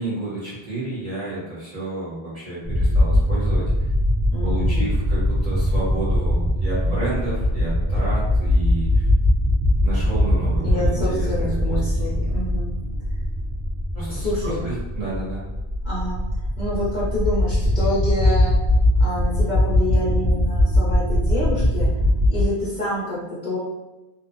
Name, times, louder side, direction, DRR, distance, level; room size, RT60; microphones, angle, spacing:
voice 1, 0.0-3.9 4.4-9.1 9.8-12.1 13.9-15.4, right 2 dB, 35° right, -9 dB, 0.9 m, -31 dB
sound 1, 2.6-22.5, left 1 dB, 70° right, 0.8 m, -21 dB
voice 2, 4.3-5.0 10.6-12.7 14.1-14.7 15.8-16.2 16.6-18.5 19.0-21.9 22.3-23.6, left 1 dB, 45° left, -9 dB, 0.8 m, -27 dB
2.7 x 2.1 x 2.5 m, 1.0 s
omnidirectional pair, 1.2 m